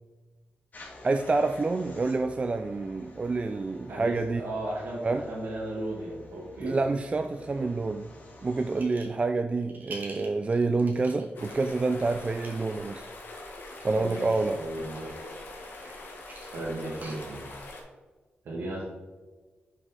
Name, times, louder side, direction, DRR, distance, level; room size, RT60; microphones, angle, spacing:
sound 1, 0.7-8.8, left 2 dB, 50° left, 1.6 m, -50 dB
voice 1, 1.0-4.4 5.0-5.2 6.6-8.1 8.4-13.0 13.8-14.6, right 3 dB, 30° right, 7 dB, 0.3 m, -28 dB
voice 2, 3.9-5.0 5.3-6.7 13.9-14.3 14.6-15.2 16.5-17.5 18.4-18.8, right 1 dB, 75° right, -7 dB, 1.9 m, -35 dB
sound 2, 8.8-9.2 9.6-11.7 12.2-12.5 13.7-14.5 14.9-17.7, right 2 dB, 50° right, 1.7 m, -46 dB
sound 3, 11.3-17.8, left 2 dB, 65° left, 1.5 m, -43 dB
6.1 x 5.2 x 3.9 m, 1.3 s
cardioid pair, 95°, 4 cm